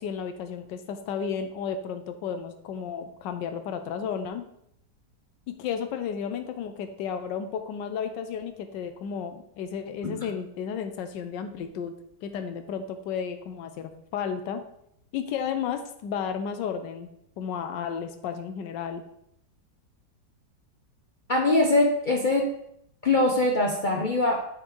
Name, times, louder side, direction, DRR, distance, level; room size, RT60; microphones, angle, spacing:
voice 1, 0.0-4.5 5.5-11.9 12.2-14.6 15.1-17.1 17.4-19.0, left 7 dB, 90° left, 8 dB, 1.3 m, -33 dB
voice 2, 21.3-22.5 23.0-24.4, left 2 dB, 60° left, 0 dB, 0.5 m, -22 dB
8.3 x 3.8 x 4.6 m, 0.75 s
omnidirectional pair, 1.9 m